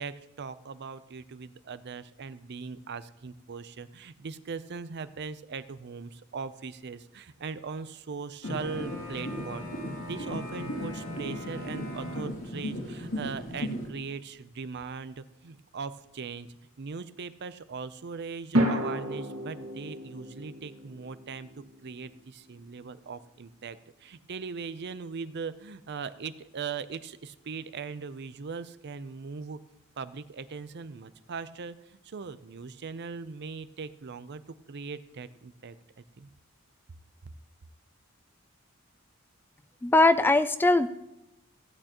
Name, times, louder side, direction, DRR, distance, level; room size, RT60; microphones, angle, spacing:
voice 1, 0.0-9.7 10.0-16.5 16.8-21.5 21.8-29.6 30.0-31.8 32.0-34.4 34.7-35.7 36.2-36.3, right 5 dB, 55° right, 14 dB, 0.5 m, -39 dB
sound 1, 8.4-13.9, left 1 dB, 70° left, 2.5 m, -36 dB
sound 2, 18.6-22.9, right 1 dB, 85° right, 1.7 m, -33 dB
voice 2, 39.8-40.9, left 2 dB, 10° left, 12 dB, 0.3 m, -21 dB
16.0 x 8.8 x 3.0 m, 0.94 s
head